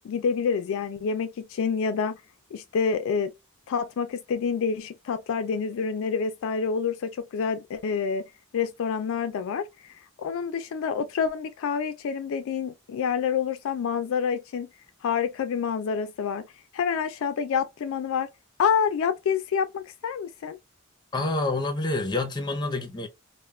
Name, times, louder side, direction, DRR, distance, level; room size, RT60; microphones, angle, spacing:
voice 1, 0.0-2.2 2.5-3.3 3.7-8.2 8.5-9.7 10.2-14.7 15.0-16.4 16.7-18.3 18.6-20.6, left 6 dB, 65° left, 0.3 m, -27 dB
voice 2, 21.1-23.1, left 2 dB, 20° left, 0.6 m, -27 dB
2.3 x 2.1 x 3.1 m
head